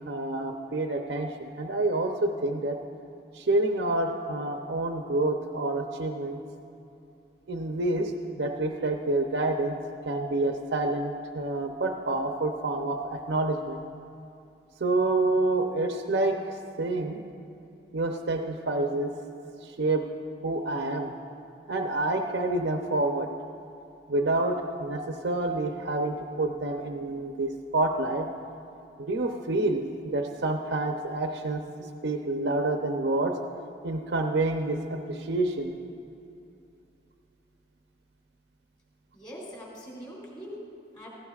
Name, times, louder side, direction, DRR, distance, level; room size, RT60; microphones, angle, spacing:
voice 1, 0.1-2.8 3.3-6.4 7.5-9.8 10.1-13.8 14.8-17.2 17.9-19.1 19.6-20.1 20.4-21.1 21.7-23.3 24.1-28.3 29.0-31.6 32.0-33.3 33.8-35.7, right 2 dB, 80° right, 4 dB, 0.6 m, -28 dB
voice 2, 39.1-41.1, equal, 25° left, -5 dB, 3.3 m, -43 dB
17.0 x 15.5 x 2.4 m, 2.7 s
head